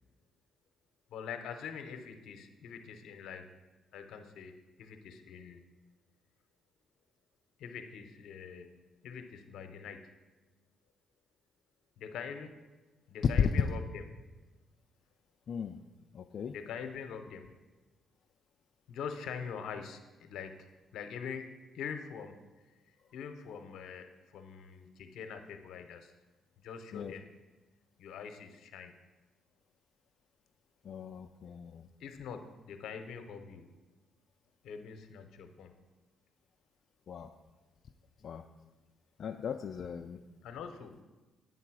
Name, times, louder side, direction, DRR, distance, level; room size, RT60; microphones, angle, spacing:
voice 1, 1.1-3.5 3.9-5.6 7.6-8.7 9.0-10.1 12.0-12.6 13.1-14.0 16.5-17.5 18.9-22.4 22.9-26.1 26.6-27.2 28.0-29.0 32.0-33.7 34.6-35.7 40.4-41.0, left 6 dB, 80° left, 7 dB, 0.7 m, -44 dB
voice 2, 15.5-15.8 16.1-16.5 26.9-27.1 30.8-31.9 37.1-37.3 38.2-38.4 39.2-40.2, left 7 dB, 60° left, 4 dB, 0.3 m, -41 dB
8.3 x 3.9 x 6.1 m, 1.2 s
cardioid pair, 90°, 0 cm